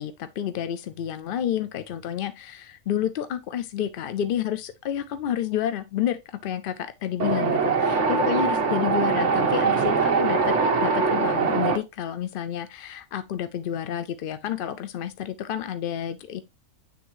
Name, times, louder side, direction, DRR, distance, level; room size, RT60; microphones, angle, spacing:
voice 1, 0.0-10.5 10.8-16.4, left 10 dB, 65° left, 0.5 m, -30 dB
Wind, 7.2-11.8, right 5 dB, 65° right, 1.4 m, -22 dB
9.4 x 3.6 x 3.0 m
omnidirectional pair, 1.4 m